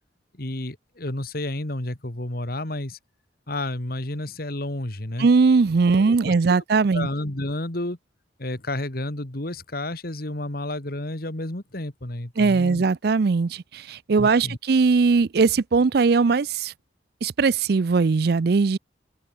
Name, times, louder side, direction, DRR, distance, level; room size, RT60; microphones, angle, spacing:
voice 1, 0.3-3.0 3.5-5.3 5.9-6.3 6.9-8.0 8.4-12.8 14.2-14.6, left 1 dB, 55° left, 2.3 m, -31 dB
voice 2, 5.2-7.1 12.4-16.7 17.2-18.8, right 4 dB, 55° right, 0.4 m, -20 dB
open air
head